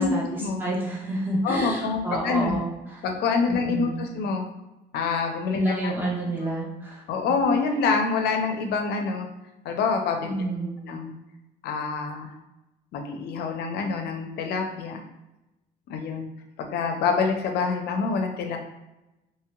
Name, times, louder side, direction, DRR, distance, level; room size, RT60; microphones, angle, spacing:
voice 1, 0.0-3.1 3.5-4.1 5.5-7.0 10.2-10.8, right 1 dB, 10° right, -4 dB, 1.0 m, -29 dB
voice 2, 1.4-2.6 3.0-4.5 4.9-5.9 7.1-9.3 9.6-10.5 10.8-11.1 11.6-12.3 12.9-15.0 15.9-16.3 16.6-18.6, left 4 dB, 75° left, 4 dB, 0.5 m, -26 dB
3.0 x 2.9 x 2.3 m, 0.97 s
cardioid pair, 110°, 17 cm